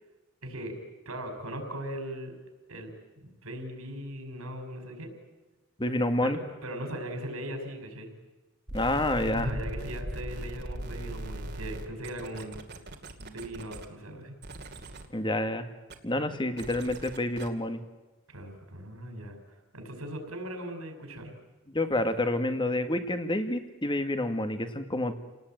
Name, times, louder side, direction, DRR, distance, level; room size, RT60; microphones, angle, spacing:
voice 1, 0.4-0.8 1.1-2.3 2.7-2.9 3.2-5.1 6.2-8.1 9.3-12.6 13.2-14.3 18.3-21.3, right 1 dB, 85° right, 5 dB, 5.6 m, -39 dB
voice 2, 5.8-6.4 8.7-9.5 15.1-15.7 16.0-17.8 21.7-25.1, left 1 dB, 20° left, 9 dB, 1.8 m, -28 dB
sound 1, 8.7-13.9 14.4-15.1 15.9-16.0 16.6-17.5, right 1 dB, 50° right, 2.4 m, -39 dB
29.0 x 19.0 x 9.1 m, 1.2 s
head